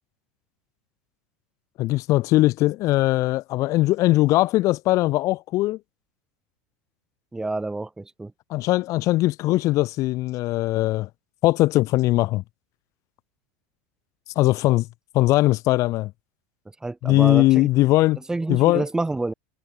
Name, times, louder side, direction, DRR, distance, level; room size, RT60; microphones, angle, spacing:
voice 1, 1.8-5.8 8.5-11.1 11.4-12.4 14.4-14.9 15.1-16.1 17.0-18.2 18.5-18.9, left 18 dB, 50° left, 2.1 m, -20 dB
voice 2, 7.3-8.3 16.8-17.9 18.3-19.3, right 2 dB, 10° right, 4.5 m, -28 dB
supercardioid pair, 115°, 7 cm